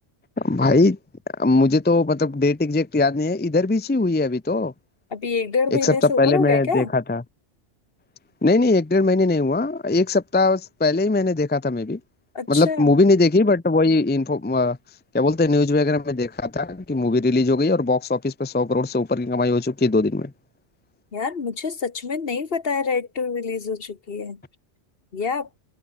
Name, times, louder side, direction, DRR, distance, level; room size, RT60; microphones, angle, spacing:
voice 1, 0.4-1.0 1.4-4.7 5.8-7.2 8.4-12.0 12.5-14.8 15.1-20.3, left 3 dB, 15° left, 0.4 m, -20 dB
voice 2, 5.1-6.9 12.3-13.0 21.1-24.4 25.1-25.5, left 5 dB, 55° left, 1.6 m, -26 dB
omnidirectional pair, 1.2 m